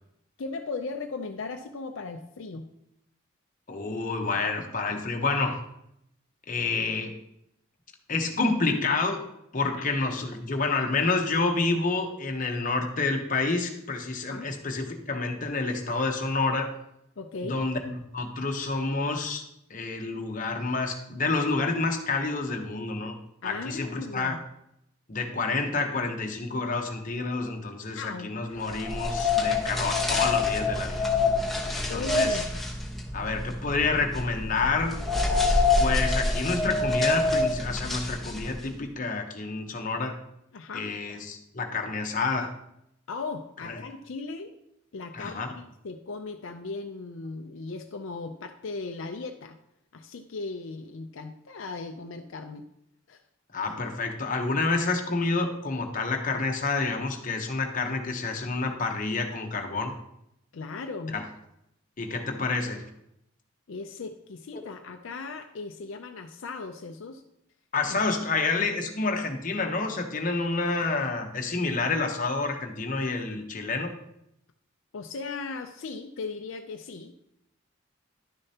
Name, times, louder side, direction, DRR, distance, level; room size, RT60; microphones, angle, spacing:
voice 1, 0.4-2.7 14.3-14.5 17.2-17.6 23.4-24.4 27.9-28.3 31.9-32.5 40.5-40.9 43.1-44.5 44.9-49.6 49.9-52.7 53.1-53.2 60.5-61.2 63.7-67.2 67.9-68.0 74.9-77.1, left 3 dB, 70° left, 5 dB, 0.5 m, -37 dB
voice 2, 3.7-5.6 6.5-7.2 8.1-9.2 9.5-16.7 17.5-19.4 19.7-23.1 23.4-24.4 25.1-31.0 31.7-32.4 33.1-35.0 35.8-40.2 40.7-42.5 43.6-43.8 45.1-45.5 53.5-59.9 61.1-61.2 62.0-62.8 67.7-73.9, left 3 dB, 40° left, 3 dB, 0.9 m, -28 dB
sound 1, 28.7-38.7, left 3 dB, ahead, 1.0 m, -26 dB
11.0 x 6.6 x 2.8 m, 0.79 s
head